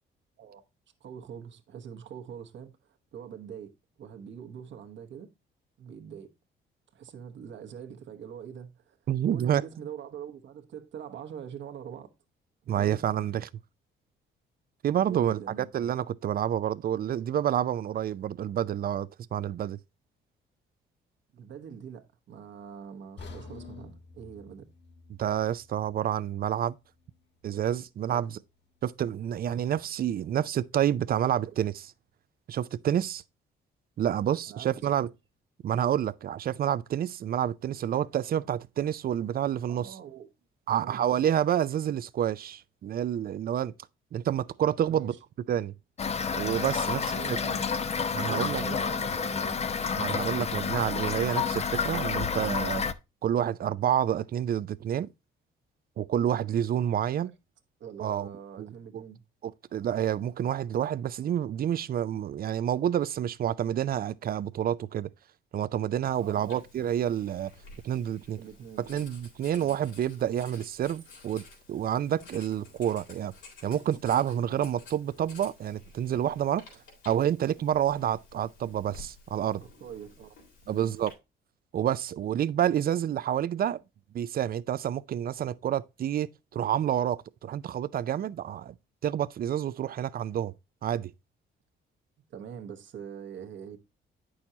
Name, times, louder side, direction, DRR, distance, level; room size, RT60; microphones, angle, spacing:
voice 1, 1.0-5.3 5.8-6.3 6.9-9.0 9.3-12.1 12.6-13.0 14.9-15.7 21.3-24.7 28.1-28.3 31.4-31.6 34.5-34.7 38.3-38.5 39.7-40.3 40.7-41.1 44.9-45.2 46.8-47.7 48.3-49.6 50.0-50.2 57.2-57.3 57.8-59.2 66.2-66.6 68.3-68.8 79.6-80.4 80.6-80.9 92.3-93.8, right 8 dB, 70° right, 1.2 m, -44 dB
voice 2, 9.1-9.6 12.7-13.5 14.8-19.8 25.2-26.8 27.4-28.4 28.8-31.7 32.5-33.2 34.0-35.1 35.6-40.0 40.7-43.7 44.1-45.1 45.5-45.7 46.3-47.0 48.1-48.8 49.9-52.8 53.2-55.1 56.0-57.3 58.0-58.3 58.6-59.0 59.4-65.1 65.5-67.5 67.8-68.4 68.8-71.4 71.7-73.3 73.6-76.6 77.1-79.6 80.7-81.1 81.7-83.8 84.1-88.7 89.0-90.5 90.8-91.1, right 10 dB, 50° right, 0.5 m, -28 dB
sound 1, 23.2-27.2 27.6-27.8 28.3-28.4, left 4 dB, 60° left, 1.9 m, -49 dB
Toilet flush / Fill (with liquid), 46.0-52.9, left 6 dB, 35° left, 0.5 m, -30 dB
Writing, 66.1-81.1, left 3 dB, 80° left, 3.6 m, -52 dB
8.7 x 6.3 x 2.7 m
cardioid pair, 90°, 20 cm